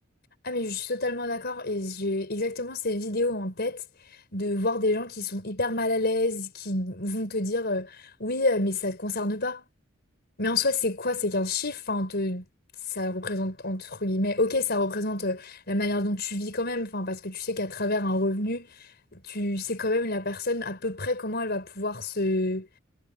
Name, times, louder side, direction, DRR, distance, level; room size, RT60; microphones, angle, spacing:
voice 1, 0.4-3.8 4.3-9.6 10.4-12.4 12.9-18.7 19.1-22.7, left 2 dB, 50° left, 4.7 m, -28 dB
head